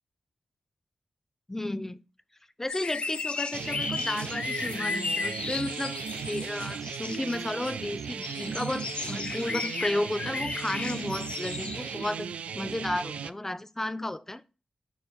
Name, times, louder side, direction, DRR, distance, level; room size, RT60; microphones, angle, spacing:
voice 1, 1.5-2.0 2.6-6.0 6.3-14.4, left 1 dB, 20° left, 0.6 m, -33 dB
sound 1, 2.7-12.1 12.7-12.8, left 4 dB, 60° left, 0.6 m, -35 dB
sound 2, 3.5-13.3, right 7 dB, 85° right, 0.3 m, -37 dB
8.4 x 4.1 x 3.6 m
cardioid pair, 55°, 2 cm